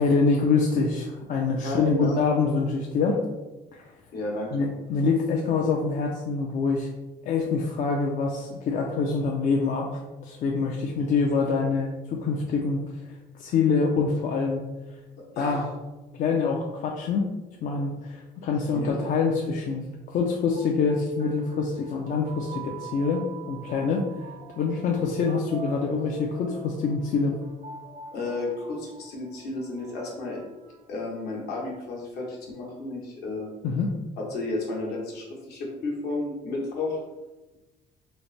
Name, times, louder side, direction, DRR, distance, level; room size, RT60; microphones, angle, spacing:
voice 1, 0.0-3.2 3.7-3.9 4.5-6.9 7.2-9.9 10.2-12.8 13.4-14.6 15.4-15.6 16.2-17.3 17.6-24.1 24.6-27.3 33.6-33.9, left 4 dB, 50° left, -1 dB, 0.4 m, -25 dB
voice 2, 1.6-2.2 4.1-4.7 15.4-15.7 18.7-19.0 28.1-30.4 30.9-33.5 34.2-37.0, left 2 dB, 70° left, -2 dB, 1.1 m, -32 dB
sound 1, 20.5-31.4, right 5 dB, 50° right, 0.5 m, -45 dB
3.2 x 2.0 x 4.0 m, 1.1 s
cardioid pair, 110°, 17 cm